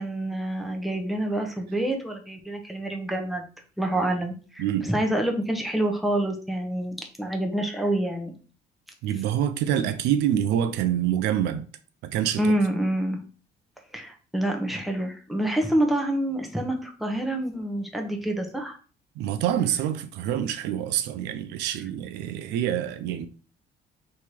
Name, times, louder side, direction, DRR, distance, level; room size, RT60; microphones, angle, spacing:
voice 1, 0.0-3.4 3.8-8.3 12.4-13.2 13.9-18.8, right 1 dB, ahead, 1.0 m, -27 dB
voice 2, 4.6-4.9 9.0-11.7 12.0-12.5 19.2-23.3, right 10 dB, 85° right, 0.5 m, -26 dB
3.5 x 3.2 x 4.5 m
cardioid pair, 110°, 17 cm